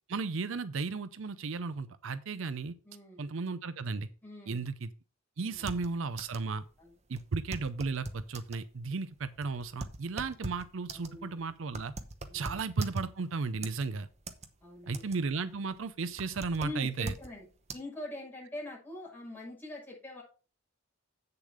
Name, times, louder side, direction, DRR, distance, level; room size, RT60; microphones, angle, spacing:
voice 1, 0.1-2.7 3.2-4.1 4.5-4.9 5.4-6.6 7.1-11.9 12.3-14.1 14.9-17.1, right 4 dB, 65° right, 13 dB, 0.5 m, -34 dB
voice 2, 2.8-3.2 4.2-4.7 5.4-5.7 6.8-7.0 10.9-11.5 12.2-12.6 14.6-15.0 16.6-17.5 17.7-20.2, left 2 dB, 10° left, -5 dB, 6.0 m, -44 dB
sound 1, 5.5-6.5 6.8-6.9 7.2-8.6 9.2-13.3 13.6-14.5 14.8-15.4 15.7-17.3 17.7-17.8, right 2 dB, 30° right, 0.9 m, -42 dB
8.3 x 6.8 x 4.9 m, 0.35 s
head